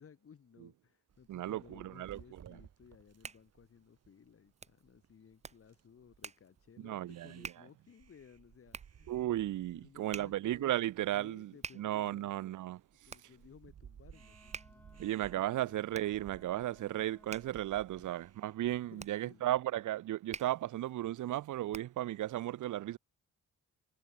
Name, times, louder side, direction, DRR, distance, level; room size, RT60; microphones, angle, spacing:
voice 1, 0.0-9.1 9.7-10.7 11.1-12.3 13.0-15.7 18.0-18.1 18.9-19.5, left 7 dB, 45° left, 6.5 m, -59 dB
sound 1, 1.1-18.8, right 8 dB, 50° right, 5.7 m, -60 dB
voice 2, 1.3-2.6 6.8-7.5 9.1-12.8 15.0-23.0, right 14 dB, 65° right, 0.8 m, -35 dB
Hands, 2.8-22.1, right 5 dB, 20° right, 0.7 m, -51 dB
Wind instrument woodwind instrument, 14.1-17.7, left 1 dB, 5° left, 4.5 m, -62 dB
cardioid pair, 145°, 33 cm